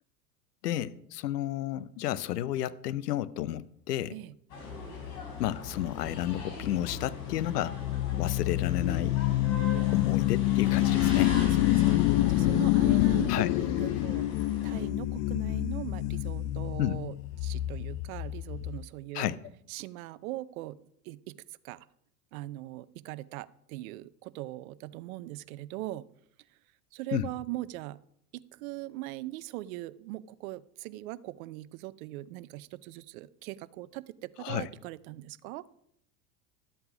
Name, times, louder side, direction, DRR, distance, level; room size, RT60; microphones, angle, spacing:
voice 1, 0.6-4.2 5.4-7.8 8.2-9.2 9.9-11.3 13.3-13.5 16.8-17.0 19.1-19.4 27.1-27.3 34.4-34.7, left 13 dB, 80° left, 0.7 m, -32 dB
sound 1, 4.5-14.8, left 2 dB, 60° left, 5.5 m, -40 dB
sound 2, 4.7-18.8, left 16 dB, 40° left, 0.5 m, -28 dB
voice 2, 11.2-12.0 12.3-14.3 14.6-17.1 17.4-19.4 19.7-20.8 21.0-21.4 21.6-21.9 22.3-26.0 26.9-28.0 28.3-35.6, right 17 dB, 60° right, 0.6 m, -40 dB
12.5 x 8.0 x 4.9 m
hypercardioid pair, 85°, 47 cm